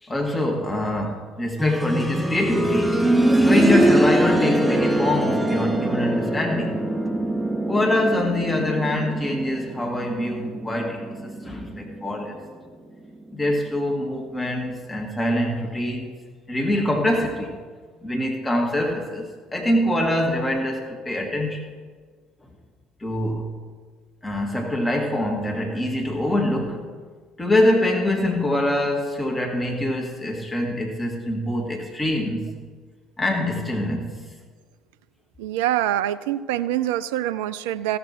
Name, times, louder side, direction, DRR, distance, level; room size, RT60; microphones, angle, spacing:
voice 1, 0.0-2.9 3.4-6.8 7.7-12.4 13.3-16.1 16.5-17.5 18.0-21.6 23.0-23.5 24.2-26.9 27.4-32.6 33.2-34.2, left 1 dB, 15° left, 1 dB, 1.9 m, -24 dB
sound 1, 1.6-12.4 12.7-12.8 13.7-13.8, right 1 dB, ahead, 0.9 m, -23 dB
voice 2, 35.4-38.0, right 13 dB, 65° right, 14 dB, 0.3 m, -25 dB
15.0 x 7.6 x 4.4 m, 1.5 s
figure-of-eight pair, 55°, 0 cm